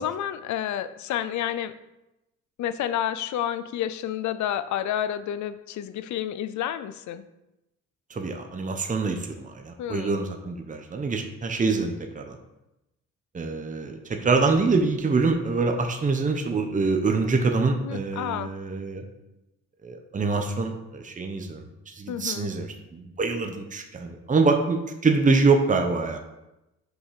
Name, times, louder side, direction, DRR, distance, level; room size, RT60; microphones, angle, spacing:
voice 1, 0.0-1.7 2.6-7.2 9.8-10.1 17.8-18.5 22.1-22.5, left 10 dB, 70° left, 13 dB, 0.6 m, -30 dB
voice 2, 8.1-12.4 13.3-19.0 19.8-26.2, right 4 dB, 25° right, 4 dB, 1.0 m, -25 dB
6.3 x 5.3 x 4.9 m, 0.93 s
cardioid pair, 90°, 30 cm